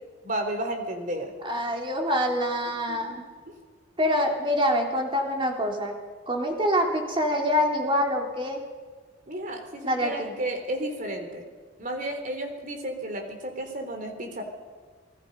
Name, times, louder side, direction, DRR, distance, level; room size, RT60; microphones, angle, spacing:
voice 1, 0.2-1.3 2.9-3.2 9.3-11.5 11.8-14.4, right 1 dB, 40° right, 5 dB, 3.7 m, -32 dB
voice 2, 1.4-3.2 4.0-5.9 6.3-8.6 9.8-10.3, equal, 25° right, 1 dB, 3.4 m, -25 dB
27.5 x 21.0 x 5.4 m, 1.5 s
head